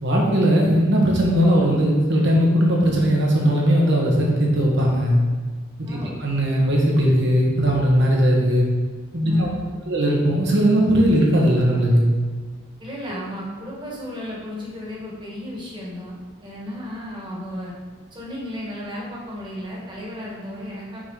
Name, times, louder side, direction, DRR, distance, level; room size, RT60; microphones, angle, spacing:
voice 1, 0.0-5.2 5.8-8.7 9.1-9.5 9.9-12.0, equal, 60° right, -1 dB, 1.3 m, -18 dB
voice 2, 5.8-6.2 9.2-9.8 12.8-16.2 16.4-17.7 18.1-21.0, left 1 dB, 25° right, -5 dB, 1.5 m, -34 dB
6.2 x 3.7 x 4.8 m, 1.4 s
head